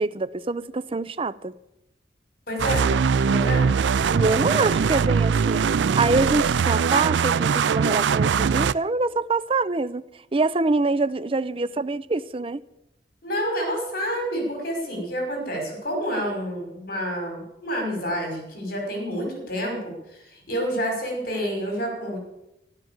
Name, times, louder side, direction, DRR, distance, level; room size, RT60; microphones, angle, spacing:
voice 1, 0.0-1.5 4.1-10.0 10.3-12.6, right 3 dB, 30° right, 0.6 m, -25 dB
voice 2, 2.5-2.9 3.3-3.7 4.4-4.7 13.2-22.2, equal, 55° left, 5.8 m, -29 dB
sound 1, 2.6-8.7, right 6 dB, 90° right, 0.4 m, -21 dB
13.0 x 12.0 x 7.4 m
head